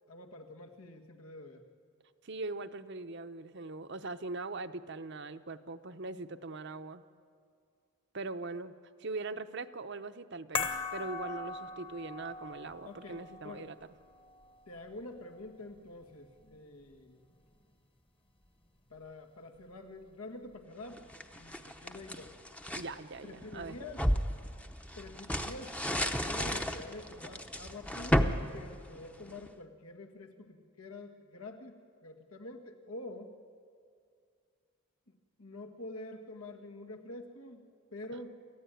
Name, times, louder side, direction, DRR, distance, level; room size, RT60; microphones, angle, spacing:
voice 1, 0.1-1.6 12.8-13.7 14.7-17.2 18.9-22.3 23.2-24.1 25.0-33.4 35.1-38.4, left 2 dB, 85° left, 4 dB, 1.9 m, -47 dB
voice 2, 2.2-7.0 8.1-8.7 9.0-13.7 22.8-23.8, right 3 dB, 55° right, 10 dB, 0.8 m, -41 dB
sound 1, 10.6-17.0 17.2-17.4, left 4 dB, 25° left, 1.2 m, -41 dB
sound 2, 20.9-22.9 23.4-29.5, equal, 5° left, 0.8 m, -33 dB
28.0 x 14.5 x 9.2 m, 2.2 s
head